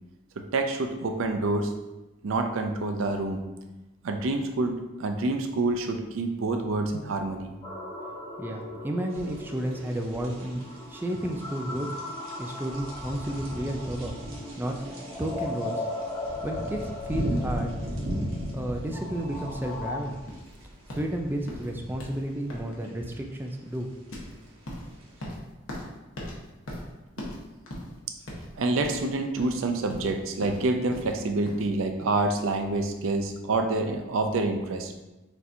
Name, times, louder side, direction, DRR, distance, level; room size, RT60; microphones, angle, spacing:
voice 1, 0.4-1.7 2.2-3.4 4.0-4.7 5.0-7.5 28.6-34.9, right 2 dB, 70° right, 6 dB, 0.5 m, -27 dB
sound 1, 7.6-20.0, left 2 dB, 25° left, 1.3 m, -38 dB
voice 2, 8.4-10.6 10.9-11.9 12.4-14.1 14.6-14.8 15.2-15.7 16.4-17.7 18.5-20.2 20.9-23.9, right 1 dB, 10° right, 2 dB, 0.3 m, -32 dB
sound 2, 9.1-25.3, equal, 85° right, 1.2 m, -38 dB
sound 3, 20.3-31.7, equal, 70° left, 1.0 m, -41 dB
6.0 x 2.8 x 2.6 m, 1.0 s
head